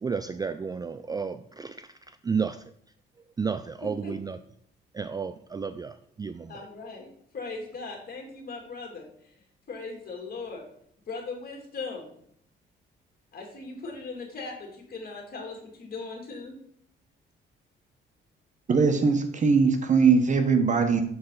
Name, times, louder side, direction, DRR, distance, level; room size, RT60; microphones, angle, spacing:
voice 1, 0.0-1.9 2.2-2.6 3.4-4.4 4.9-6.7, right 5 dB, 20° right, 11 dB, 0.3 m, -32 dB
voice 2, 6.5-7.1 7.3-9.1 9.7-10.6 11.1-12.1 13.3-16.5, left 4 dB, 50° left, 0 dB, 2.7 m, -38 dB
voice 3, 18.7-21.0, right 5 dB, 40° right, 6 dB, 1.2 m, -21 dB
6.9 x 6.4 x 4.0 m, 0.66 s
cardioid pair, 90°, 20 cm